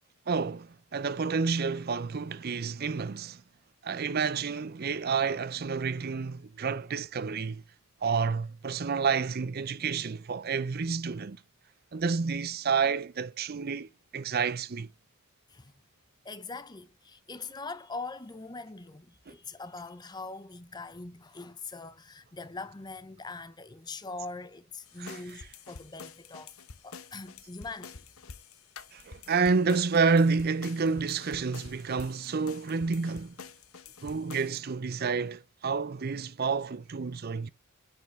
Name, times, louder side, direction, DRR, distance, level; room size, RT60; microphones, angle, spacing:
voice 1, 0.3-3.4 3.8-7.6 8.0-11.4 11.9-13.9 14.1-14.9 25.0-25.2 28.9-33.3 34.0-37.5, right 5 dB, 45° right, 0.5 m, -29 dB
voice 2, 16.2-26.5 26.8-28.1, left 3 dB, 20° left, 0.6 m, -42 dB
sound 1, 24.9-34.6, left 5 dB, 70° left, 1.0 m, -48 dB
9.6 x 4.9 x 3.2 m
head